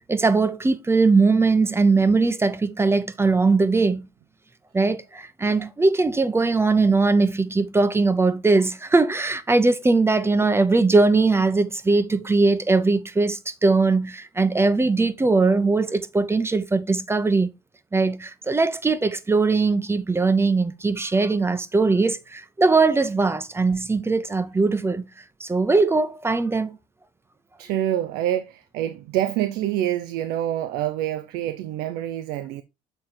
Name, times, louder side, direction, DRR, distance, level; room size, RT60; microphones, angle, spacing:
voice 1, 0.1-4.1 4.7-17.5 17.9-25.1 25.4-26.8, right 3 dB, 15° right, 0.9 m, -20 dB
voice 2, 27.6-32.6, right 12 dB, 80° right, 0.6 m, -26 dB
6.8 x 3.8 x 4.3 m
supercardioid pair, 95°, 16 cm